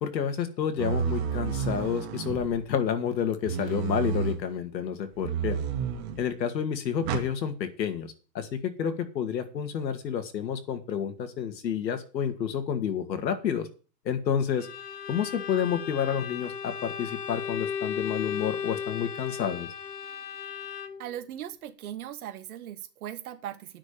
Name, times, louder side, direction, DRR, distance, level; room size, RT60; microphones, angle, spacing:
voice 1, 0.0-5.6 6.2-13.7 14.0-14.7 15.1-19.7, left 8 dB, 85° left, 7 dB, 2.3 m, -29 dB
sound 1, 0.8-2.7 3.4-4.4 5.2-6.3 7.0-7.3, right 7 dB, 40° right, 2.0 m, -30 dB
Bowed string instrument, 14.6-21.1, left 7 dB, 65° left, 1.5 m, -35 dB
voice 2, 21.0-23.8, right 11 dB, 60° right, 9 dB, 1.7 m, -39 dB
10.0 x 6.2 x 8.7 m, 0.36 s
hypercardioid pair, 155°, 50 cm